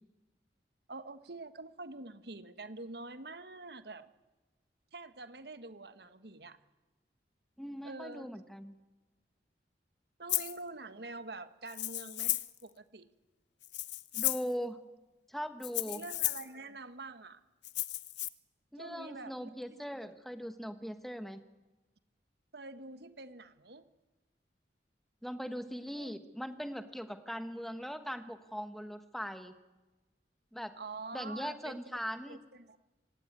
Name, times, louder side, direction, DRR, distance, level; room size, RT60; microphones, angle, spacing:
voice 1, 0.9-4.1 4.9-6.6 7.8-8.3 10.2-13.1 15.8-17.4 18.8-19.8 22.5-23.9 25.9-26.1 30.8-31.8 32.3-32.8, right 3 dB, 65° right, 11 dB, 1.4 m, -46 dB
voice 2, 7.6-8.7 14.1-14.8 15.3-16.0 18.7-21.4 25.2-29.5 30.5-30.7 31.1-32.4, equal, ahead, 9 dB, 1.3 m, -40 dB
Rattle (instrument), 10.3-10.6 11.7-12.6 13.6-14.5 15.6-16.5 17.6-18.3, left 16 dB, 85° left, 0.9 m, -34 dB
25.5 x 18.0 x 9.7 m, 1.1 s
head